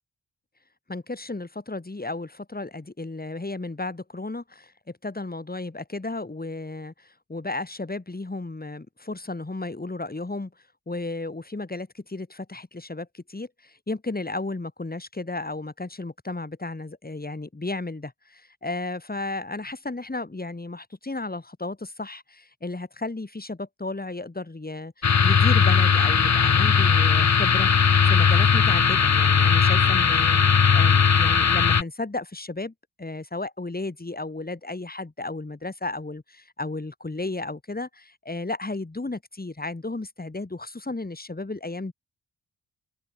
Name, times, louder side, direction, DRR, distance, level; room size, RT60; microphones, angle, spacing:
voice 1, 0.9-4.7 5.0-10.5 10.9-41.9, left 2 dB, 20° left, 7.3 m, -34 dB
sound 1, 25.0-31.8, left 6 dB, 40° left, 1.2 m, -18 dB
open air
wide cardioid pair, 120°, 42 cm